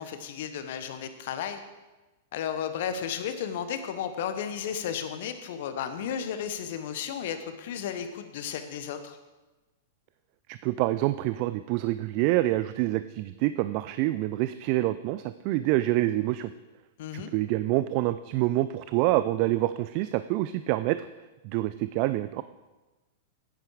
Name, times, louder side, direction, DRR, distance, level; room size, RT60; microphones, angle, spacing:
voice 1, 0.0-1.6 2.3-9.2 17.0-17.3, left 8 dB, 60° left, 9 dB, 1.0 m, -33 dB
voice 2, 10.5-16.5 17.1-21.1 21.4-22.4, right 16 dB, 50° right, 13 dB, 0.3 m, -26 dB
9.3 x 9.1 x 4.8 m, 1.1 s
hypercardioid pair, 105°, 0 cm